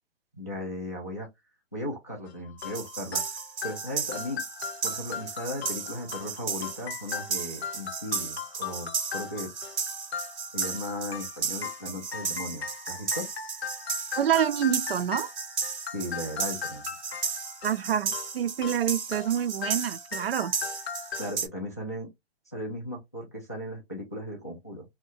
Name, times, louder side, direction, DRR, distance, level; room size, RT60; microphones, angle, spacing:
voice 1, 0.4-1.3 1.7-3.2 3.6-4.4 4.8-9.5 10.5-13.3 15.9-16.9 21.2-22.1 22.5-24.8, left 1 dB, 15° left, 0.3 m, -36 dB
sound 1, 2.3-21.3, left 7 dB, 70° left, 0.6 m, -39 dB
sound 2, 2.6-21.5, right 6 dB, 85° right, 0.8 m, -34 dB
voice 2, 14.2-15.3 17.6-20.5, right 9 dB, 60° right, 0.4 m, -27 dB
2.8 x 2.1 x 2.4 m
hypercardioid pair, 145°, 33 cm